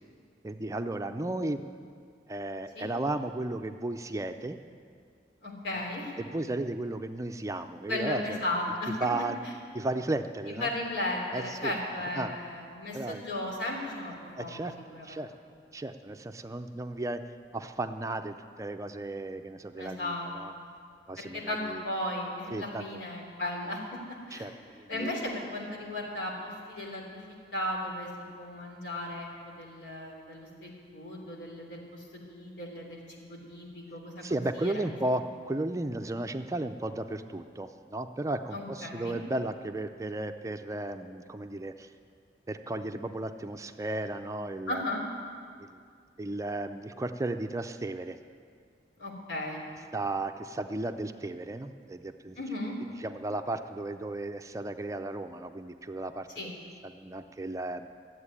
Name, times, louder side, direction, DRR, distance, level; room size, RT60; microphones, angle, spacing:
voice 1, 0.4-1.6 2.3-4.6 6.2-8.4 9.0-9.4 9.7-10.7 11.3-11.7 12.1-12.3 12.9-13.2 14.3-14.7 15.0-15.3 15.7-17.2 17.5-20.5 21.1-21.8 22.5-23.0 24.3-25.2 34.2-41.9 42.5-45.0 45.7-45.8 46.2-48.2 49.9-52.4 53.0-56.6 56.8-57.9, right 2 dB, 20° right, 7 dB, 0.4 m, -34 dB
voice 2, 5.4-6.1 7.9-8.9 9.4-9.5 10.6-15.2 19.8-20.3 20.5-20.7 21.3-24.5 24.9-34.9 38.5-39.2 44.7-45.0 49.0-49.6 52.4-52.7 56.3-56.5, left 1 dB, 80° left, -2 dB, 3.4 m, -36 dB
13.0 x 8.0 x 9.7 m, 2.1 s
head